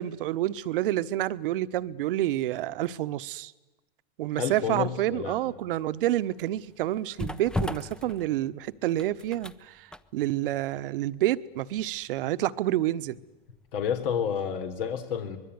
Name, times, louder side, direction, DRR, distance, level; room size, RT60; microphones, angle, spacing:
voice 1, 0.0-3.5 4.2-13.2, right 14 dB, 65° right, 14 dB, 1.2 m, -28 dB
voice 2, 4.3-5.5 13.7-15.4, left 7 dB, 70° left, 7 dB, 3.9 m, -30 dB
sound 1, 5.9-13.9 14.2-14.4, left 1 dB, 5° left, 0.8 m, -39 dB
24.5 x 22.0 x 9.6 m, 1.1 s
hypercardioid pair, 130°, 29 cm